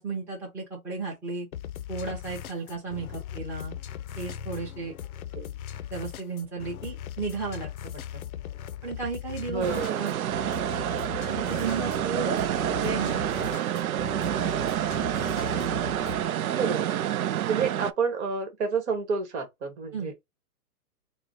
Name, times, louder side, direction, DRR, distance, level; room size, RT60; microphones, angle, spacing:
voice 1, 0.0-1.5 1.9-3.8 4.2-4.9 5.9-8.2 8.8-9.6 10.0-10.1 11.3-12.4 12.8-13.2 19.9-20.1, right 4 dB, 5° right, 0.9 m, -34 dB
sound 1, 1.5-16.3, left 10 dB, 65° left, 0.6 m, -39 dB
voice 2, 9.5-10.0 16.5-16.9 17.5-20.1, right 5 dB, 50° right, 1.5 m, -29 dB
sound 2, 9.6-17.9, right 11 dB, 70° right, 0.5 m, -28 dB
4.9 x 2.2 x 3.0 m
hypercardioid pair, 155°, 45 cm